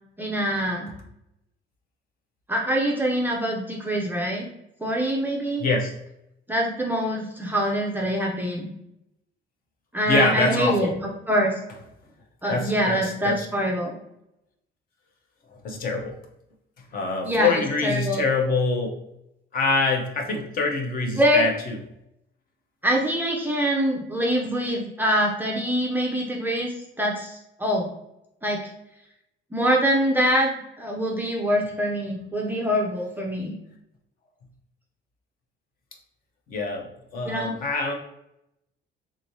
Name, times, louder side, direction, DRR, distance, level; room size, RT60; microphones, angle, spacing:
voice 1, 0.2-0.9 2.5-4.5 4.8-5.6 6.5-8.7 9.9-10.9 11.3-11.5 12.4-14.0 17.2-18.2 21.2-21.5 22.8-27.9 28.4-28.7 29.5-33.6 37.2-37.6, equal, 10° right, -2 dB, 0.4 m, -24 dB
voice 2, 5.6-5.9 10.1-10.9 12.5-13.5 15.6-16.2 16.9-19.0 19.5-21.7 36.5-37.9, left 3 dB, 45° left, 2 dB, 0.7 m, -25 dB
3.6 x 3.1 x 2.6 m, 0.83 s
cardioid pair, 170°, 20 cm